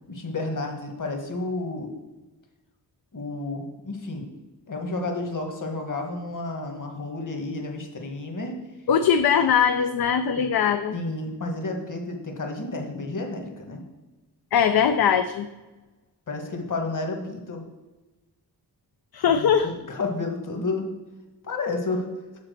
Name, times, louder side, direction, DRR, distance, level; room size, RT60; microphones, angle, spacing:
voice 1, 0.1-1.9 3.1-4.3 4.7-8.5 10.4-10.5 10.9-13.8 16.3-17.6 19.3-20.9 21.4-22.0, left 2 dB, 50° left, 3 dB, 1.5 m, -31 dB
voice 2, 8.9-11.0 14.5-15.5 19.1-19.7, left 7 dB, 65° left, 9 dB, 0.5 m, -21 dB
7.4 x 4.2 x 6.6 m, 1.1 s
wide cardioid pair, 95°, 40 cm